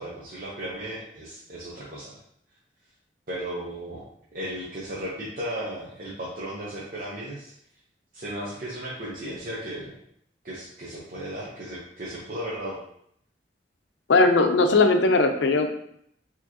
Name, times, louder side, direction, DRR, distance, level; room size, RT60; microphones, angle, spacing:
voice 1, 0.0-2.2 3.3-4.1 4.3-7.5 8.1-9.9 10.4-12.8, right 1 dB, 50° right, -7 dB, 0.7 m, -35 dB
voice 2, 14.1-15.7, left 3 dB, 80° left, 6 dB, 0.5 m, -19 dB
4.5 x 2.9 x 2.9 m, 0.70 s
head